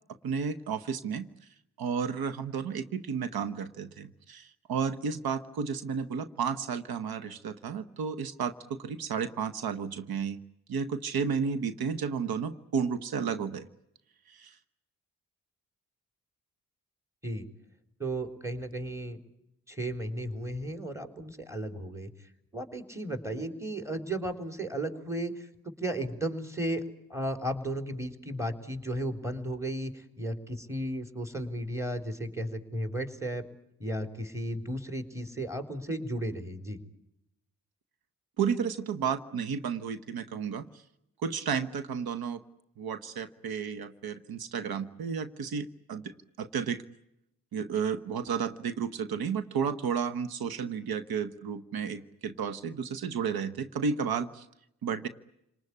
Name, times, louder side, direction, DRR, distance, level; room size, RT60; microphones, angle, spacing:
voice 1, 0.2-1.3 1.8-10.4 10.7-13.7 14.3-14.6 38.4-40.7 41.2-42.4 42.8-46.8 47.5-54.5 54.8-55.1, right 6 dB, 85° right, 12 dB, 1.1 m, -32 dB
voice 2, 18.0-19.2 19.7-22.1 22.5-26.8 27.1-33.4 33.8-36.8, right 1 dB, 10° right, 8 dB, 3.8 m, -34 dB
29.0 x 19.5 x 9.7 m, 0.84 s
cardioid pair, 60°, 36 cm